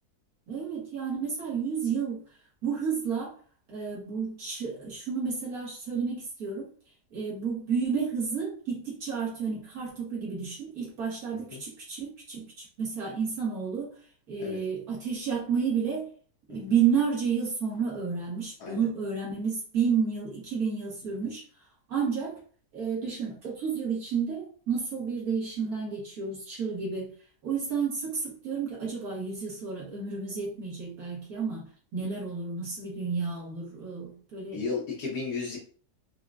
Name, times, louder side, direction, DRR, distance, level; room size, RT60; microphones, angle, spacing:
voice 1, 0.5-2.2 2.6-3.3 3.7-6.7 7.1-13.9 14.3-16.1 16.5-21.4 21.9-22.4 22.7-27.1 27.4-31.7 31.9-34.6, right 6 dB, 70° right, -6 dB, 1.6 m, -31 dB
voice 2, 34.5-35.6, left 4 dB, 85° left, -3 dB, 1.4 m, -34 dB
4.6 x 2.1 x 2.4 m, 0.43 s
omnidirectional pair, 1.7 m